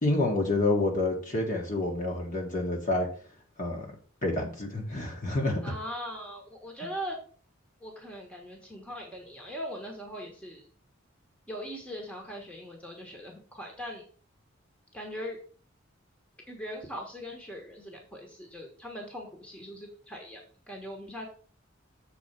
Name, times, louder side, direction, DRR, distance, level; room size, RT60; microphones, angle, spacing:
voice 1, 0.0-3.1 3.6-3.9 4.2-5.6, left 2 dB, 40° left, 1 dB, 1.7 m, -28 dB
voice 2, 5.6-7.2 7.8-10.7 11.5-14.0 14.9-15.4 16.5-20.4 20.7-21.3, equal, 5° left, 0 dB, 1.3 m, -40 dB
7.1 x 4.3 x 5.8 m, 0.43 s
head